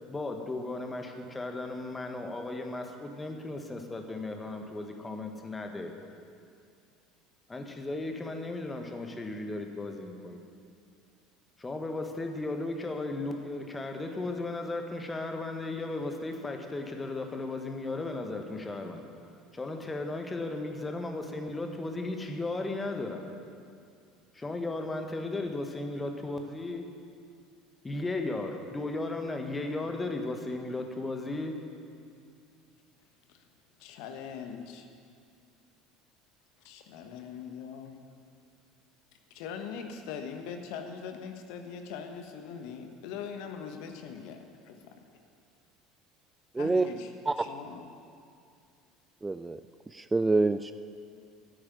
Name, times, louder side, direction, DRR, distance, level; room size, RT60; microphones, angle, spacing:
voice 1, 0.1-5.9 7.5-10.4 11.6-19.1 19.5-23.2 24.3-26.9 27.8-31.6, left 2 dB, 20° left, 4 dB, 1.6 m, -35 dB
voice 2, 33.8-34.9 36.6-38.0 39.3-44.4 46.6-47.1 47.4-47.9, left 6 dB, 60° left, 5 dB, 1.1 m, -41 dB
voice 3, 46.5-46.9 47.3-47.4 49.2-49.6 49.9-50.7, right 3 dB, 15° right, 11 dB, 0.4 m, -26 dB
10.0 x 8.7 x 9.8 m, 2.4 s
figure-of-eight pair, 65°, 0 cm